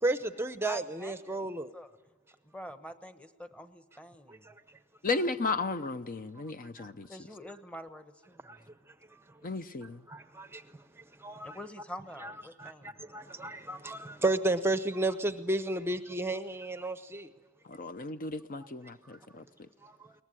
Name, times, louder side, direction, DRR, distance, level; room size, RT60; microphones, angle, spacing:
voice 1, 0.0-1.7 4.3-4.5 6.8-6.9 8.4-8.6 9.1-9.2 10.1-10.6 11.0-11.6 12.2-12.3 12.6-17.3 19.8-20.1, right 2 dB, 10° right, 0.7 m, -33 dB
voice 2, 0.6-2.0 2.4-4.5 7.1-8.7 11.4-13.0, equal, 5° left, 1.1 m, -46 dB
voice 3, 5.0-7.1 9.4-10.0 17.6-19.4, left 3 dB, 40° left, 0.7 m, -34 dB
22.0 x 19.5 x 9.7 m
head